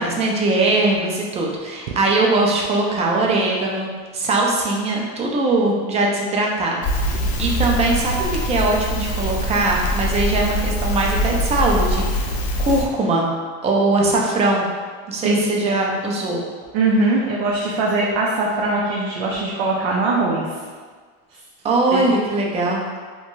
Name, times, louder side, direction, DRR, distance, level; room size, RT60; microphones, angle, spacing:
voice 1, 0.0-12.3 12.6-13.3 13.6-14.7 15.1-16.4 21.6-22.8, right 2 dB, 20° right, -1 dB, 0.4 m, -21 dB
Crackle, 6.8-12.9, equal, 55° left, 0.5 m, -23 dB
voice 2, 16.7-20.5 21.9-22.0, right 3 dB, 85° right, -4 dB, 0.5 m, -21 dB
2.6 x 2.2 x 2.9 m, 1.5 s
supercardioid pair, 135°, 30 cm